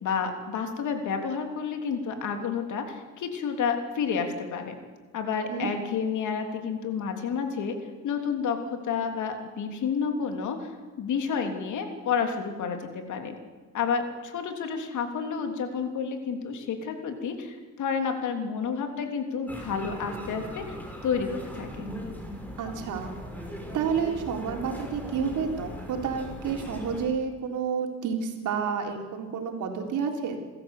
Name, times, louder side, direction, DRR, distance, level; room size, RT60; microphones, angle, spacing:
voice 1, 0.0-4.7 5.1-7.8 8.0-8.6 8.8-10.7 11.0-13.4 13.7-20.8 21.0-21.9, left 6 dB, 75° left, 5 dB, 3.3 m, -30 dB
sound 1, 19.5-27.1, equal, 5° left, 5.7 m, -39 dB
voice 2, 22.6-23.2 23.7-30.4, right 6 dB, 80° right, 2 dB, 3.8 m, -30 dB
27.5 x 13.5 x 8.5 m, 1.4 s
cardioid pair, 90°, 30 cm